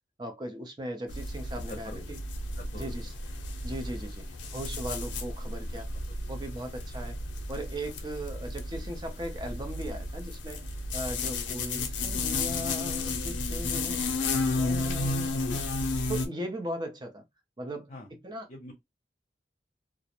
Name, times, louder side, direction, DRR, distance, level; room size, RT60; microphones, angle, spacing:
voice 1, 0.2-2.2 2.7-3.1 3.6-5.9 6.3-7.2 7.5-10.7 10.9-14.2 14.5-15.6 16.1-17.2 17.6-17.9 18.2-18.5, right 1 dB, 25° right, 0.5 m, -38 dB
sound 1, 1.1-16.3, left 3 dB, 85° left, 0.6 m, -33 dB
voice 2, 1.7-2.0 2.6-3.2 5.7-6.0 11.2-11.4 17.9-18.1 18.5-18.7, left 1 dB, 40° left, 0.6 m, -46 dB
2.4 x 2.0 x 2.9 m
head